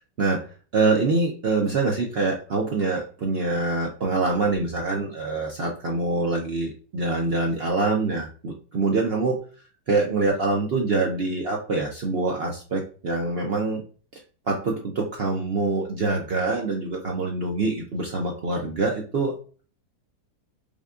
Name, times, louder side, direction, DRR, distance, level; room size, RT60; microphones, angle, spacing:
voice 1, 0.7-9.4 9.9-13.8 14.1-14.2 14.5-19.6, right 3 dB, 65° right, 0 dB, 0.6 m, -25 dB
5.1 x 2.2 x 2.4 m, 0.38 s
omnidirectional pair, 1.7 m